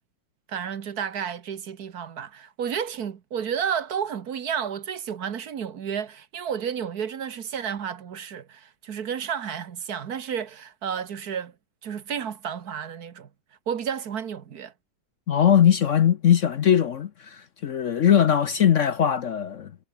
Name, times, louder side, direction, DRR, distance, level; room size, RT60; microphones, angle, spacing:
voice 1, 0.5-11.5 11.8-13.3 13.7-14.7, right 8 dB, 65° right, 1.7 m, -31 dB
voice 2, 15.3-19.7, left 9 dB, 55° left, 1.0 m, -20 dB
omnidirectional pair, 1.8 m